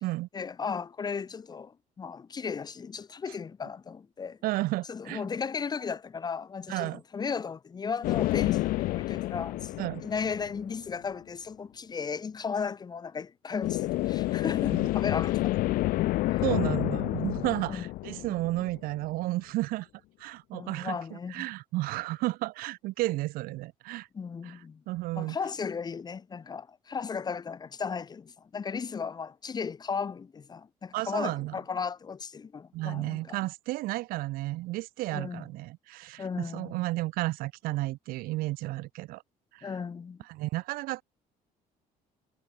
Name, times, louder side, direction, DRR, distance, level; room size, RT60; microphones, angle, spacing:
voice 1, 0.3-4.4 4.9-15.8 16.3-16.4 17.7-17.8 20.5-21.5 24.1-24.8 25.2-33.4 35.1-35.4 36.2-36.8 39.6-40.2, left 6 dB, 30° left, 2.9 m, -35 dB
voice 2, 4.4-5.2 6.7-7.0 9.8-10.0 14.7-14.9 16.4-19.9 20.2-24.1 24.4-24.6 24.9-25.4 30.9-31.5 32.7-39.2 39.5-39.7 40.3-41.0, right 19 dB, 90° right, 2.1 m, -32 dB
sound 1, 8.0-10.8 13.6-19.0, left 18 dB, 85° left, 1.9 m, -29 dB
cardioid pair, 140°, 15 cm